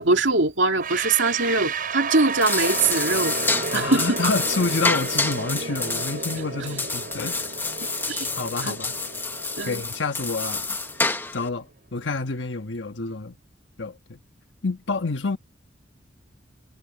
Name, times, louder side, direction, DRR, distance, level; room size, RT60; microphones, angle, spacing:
voice 1, 0.0-3.3 3.7-4.2 8.1-8.3 8.6-8.8 9.6-9.8, right 3 dB, 90° right, 2.5 m, -22 dB
sound 1, 0.8-11.7, right 4 dB, 50° right, 5.5 m, -33 dB
sound 2, 2.2-11.5, left 3 dB, 10° left, 1.0 m, -28 dB
voice 2, 3.7-7.5 8.3-8.9 9.6-10.8 11.3-13.4 13.8-14.2 14.6-15.4, left 3 dB, 80° left, 1.3 m, -28 dB
head